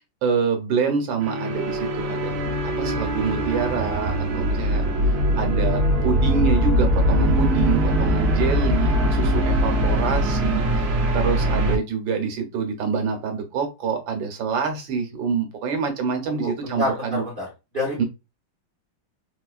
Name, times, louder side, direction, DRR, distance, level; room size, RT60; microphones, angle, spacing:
voice 1, 0.2-4.9 5.4-17.2 18.0-18.1, right 6 dB, 80° right, 4 dB, 1.5 m, -26 dB
sound 1, 1.2-11.8, equal, 65° right, 1.1 m, -21 dB
voice 2, 16.3-17.5 17.7-18.0, left 1 dB, 40° right, -5 dB, 0.8 m, -28 dB
4.2 x 2.4 x 2.3 m, 0.26 s
omnidirectional pair, 2.1 m